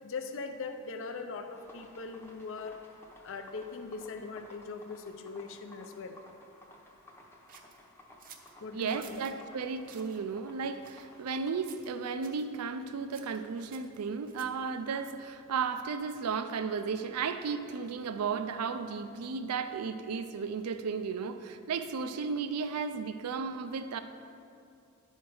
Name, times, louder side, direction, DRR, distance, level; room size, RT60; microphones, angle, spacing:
voice 1, 0.0-2.9 3.2-6.2 8.6-9.2, left 4 dB, 60° left, 7 dB, 0.5 m, -41 dB
sound 1, 1.5-11.6, left 1 dB, 10° left, 0.7 m, -56 dB
sound 2, 7.5-9.4 9.8-10.2 10.8-11.4 11.7-12.0 12.2-12.5 13.1-14.7, right 7 dB, 40° right, 0.6 m, -55 dB
voice 2, 8.7-24.0, right 5 dB, 90° right, 10 dB, 0.4 m, -34 dB
11.0 x 4.5 x 4.7 m, 2.5 s
head